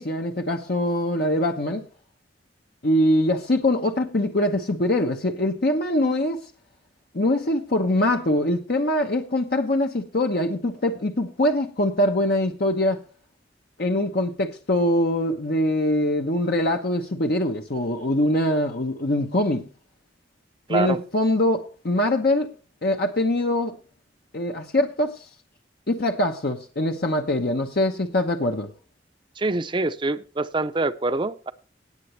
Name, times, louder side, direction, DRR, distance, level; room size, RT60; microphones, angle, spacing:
voice 1, 0.0-1.8 2.8-6.4 7.1-13.0 13.8-19.7 20.7-22.5 22.8-23.8 24.3-25.3 25.9-28.7, left 1 dB, 60° left, 0.9 m, -23 dB
voice 2, 20.7-21.0 29.4-31.5, right 2 dB, 25° right, 0.6 m, -25 dB
18.0 x 8.0 x 3.2 m
head